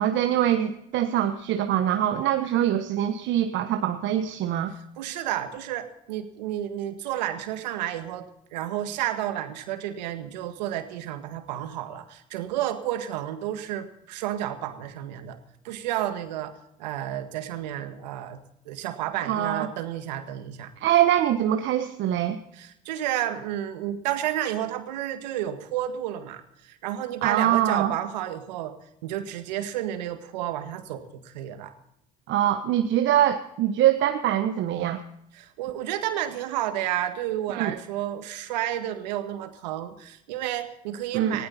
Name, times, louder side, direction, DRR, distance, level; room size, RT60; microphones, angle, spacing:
voice 1, 0.0-4.7 19.2-19.7 20.8-22.4 27.2-27.9 32.3-35.0 37.5-37.7 41.1-41.4, right 11 dB, 65° right, 7 dB, 1.2 m, -23 dB
voice 2, 5.0-15.4 15.6-20.7 22.5-28.7 29.0-31.7 35.3-41.5, right 12 dB, 85° right, 8 dB, 1.8 m, -31 dB
19.5 x 16.0 x 4.3 m, 0.78 s
hypercardioid pair, 65°, 21 cm